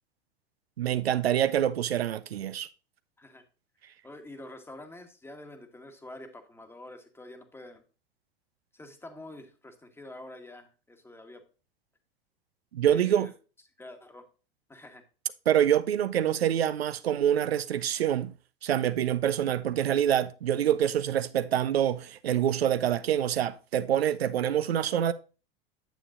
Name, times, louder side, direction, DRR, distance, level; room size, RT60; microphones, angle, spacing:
voice 1, 0.8-2.7 12.7-13.3 15.5-18.3 18.6-25.1, right 10 dB, 85° right, 0.5 m, -26 dB
voice 2, 4.0-7.8 8.7-11.4 12.9-13.3 13.8-14.3 14.7-15.0, left 1 dB, 10° left, 1.2 m, -47 dB
9.0 x 7.1 x 2.5 m
hypercardioid pair, 95°, 30 cm